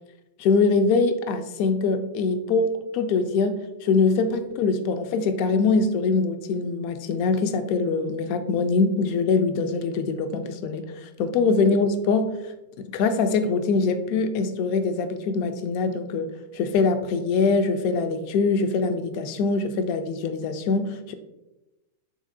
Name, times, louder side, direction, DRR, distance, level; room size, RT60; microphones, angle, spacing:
voice 1, 0.4-12.4 12.8-21.1, left 4 dB, 50° left, 10 dB, 0.3 m, -23 dB
3.4 x 2.5 x 2.6 m, 0.98 s
hypercardioid pair, 95°, 0 cm